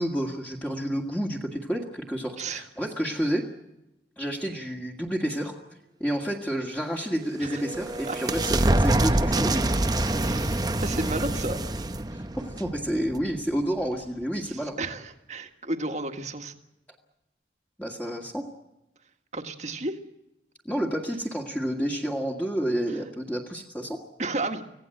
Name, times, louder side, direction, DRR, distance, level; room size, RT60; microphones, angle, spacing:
voice 1, 0.0-3.4 4.2-5.6 6.0-9.7 12.1-14.8 17.8-18.5 20.7-24.0, equal, 10° left, -1 dB, 1.9 m, -30 dB
sound 1, 7.1-13.6, right 1 dB, 20° right, 0.8 m, -26 dB
voice 2, 10.2-11.6 14.5-16.5 19.3-20.0 24.2-24.6, right 2 dB, 40° right, 6 dB, 1.7 m, -32 dB
25.5 x 17.0 x 7.8 m, 0.92 s
head